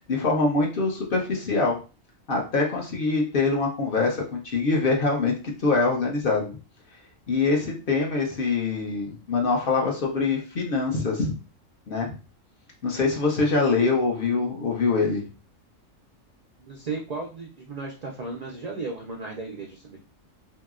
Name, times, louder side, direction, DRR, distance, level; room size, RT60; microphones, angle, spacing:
voice 1, 0.1-1.8 2.3-6.6 7.3-11.3 11.9-12.1 12.8-15.2, left 3 dB, 55° left, 0 dB, 0.7 m, -24 dB
voice 2, 16.6-20.0, right 3 dB, 75° right, 0 dB, 0.3 m, -35 dB
2.8 x 2.8 x 2.4 m, 0.34 s
omnidirectional pair, 1.4 m